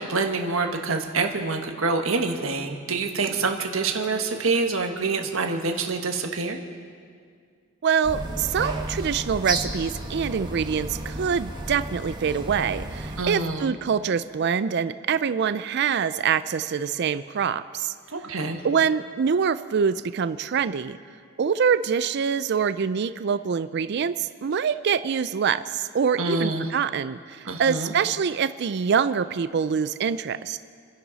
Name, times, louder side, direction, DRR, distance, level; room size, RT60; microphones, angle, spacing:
voice 1, 0.0-6.6 13.2-13.7 18.1-18.6 26.2-26.7 27.4-27.9, right 3 dB, 80° right, 4 dB, 1.5 m, -26 dB
voice 2, 7.8-17.9 18.6-21.0 21.4-30.6, right 6 dB, 55° right, 13 dB, 0.4 m, -25 dB
sound 1, 8.0-13.2, right 1 dB, 20° right, 1.4 m, -33 dB
28.5 x 11.0 x 4.1 m, 2.1 s
head